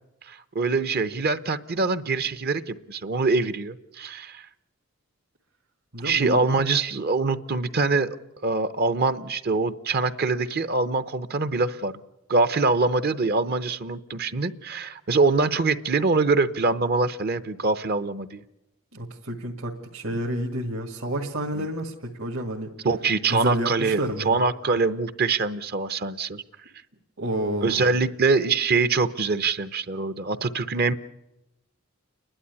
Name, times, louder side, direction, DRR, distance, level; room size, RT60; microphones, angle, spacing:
voice 1, 0.3-4.5 6.0-8.2 8.4-12.0 12.3-18.4 21.5-21.7 22.8-26.4 27.6-30.9, right 3 dB, 45° right, 13 dB, 0.7 m, -24 dB
voice 2, 5.9-6.4 18.9-22.7 23.3-24.3 27.2-27.9, right 1 dB, 65° right, 0 dB, 1.9 m, -30 dB
29.5 x 11.5 x 9.6 m, 0.95 s
head